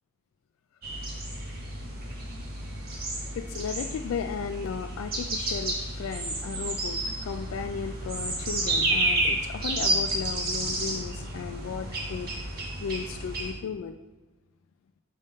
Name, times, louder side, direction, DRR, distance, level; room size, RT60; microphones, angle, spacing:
sound 1, 0.8-13.5, right 1 dB, 50° right, 1.3 m, -31 dB
voice 1, 3.4-12.3 12.8-13.9, left 6 dB, 85° left, 8 dB, 0.3 m, -35 dB
5.3 x 3.6 x 5.3 m, 1.0 s
head